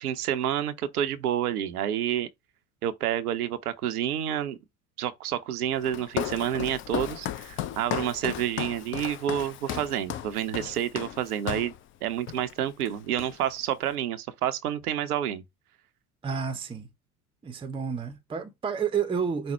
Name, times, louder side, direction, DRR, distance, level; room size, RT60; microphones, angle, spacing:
voice 1, 0.0-2.3 2.8-4.6 5.0-11.7 12.0-15.4, right 10 dB, 75° right, 0.7 m, -29 dB
Walk footsteps, 5.8-11.8 12.3-12.5 12.8-13.6, left 11 dB, 30° left, 0.5 m, -35 dB
voice 2, 16.2-16.9 17.4-19.5, right 6 dB, 10° right, 0.7 m, -30 dB
5.3 x 2.1 x 4.2 m
figure-of-eight pair, 75°, 45 cm